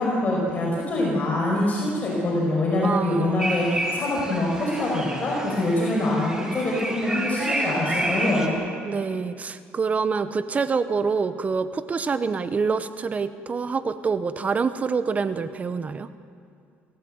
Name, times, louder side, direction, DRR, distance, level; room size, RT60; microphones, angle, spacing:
voice 1, 0.0-8.6, left 1 dB, 35° left, -4 dB, 5.4 m, -24 dB
voice 2, 2.8-3.4 8.8-16.1, right 5 dB, 30° right, 12 dB, 0.8 m, -26 dB
sound 1, 3.4-8.5, right 1 dB, 15° right, 2.9 m, -30 dB
29.0 x 15.5 x 7.8 m, 2.4 s
cardioid pair, 110°, 5 cm